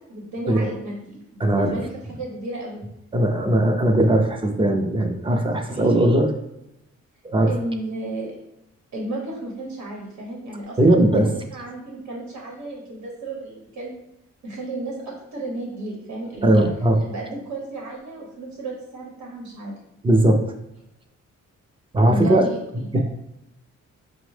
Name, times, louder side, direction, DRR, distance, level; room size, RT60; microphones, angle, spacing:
voice 1, 0.1-2.8 5.7-6.1 7.5-8.4 8.9-11.0 11.3-13.9 14.4-16.6 17.0-19.8 22.0-22.6, right 2 dB, 85° right, -2 dB, 0.9 m, -32 dB
voice 2, 1.4-1.8 3.1-6.3 7.2-7.5 10.8-11.3 16.4-17.0 20.0-20.4 21.9-22.5 22.9-23.0, right 1 dB, 20° right, 4 dB, 0.4 m, -18 dB
5.3 x 2.0 x 3.1 m, 0.86 s
cardioid pair, 125°, 29 cm